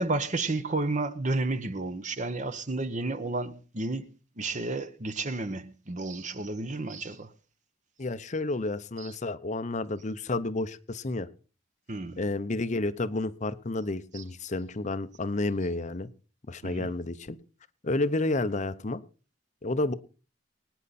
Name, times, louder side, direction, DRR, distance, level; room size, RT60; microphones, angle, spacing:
voice 1, 0.0-4.1 4.4-7.3 9.0-9.1 11.9-12.2 14.1-14.2 16.6-16.9, right 2 dB, 40° right, 1.1 m, -31 dB
voice 2, 8.0-11.3 12.2-16.1 16.5-17.4 17.8-19.0 19.6-19.9, left 2 dB, 40° left, 0.8 m, -30 dB
23.5 x 9.7 x 4.2 m
head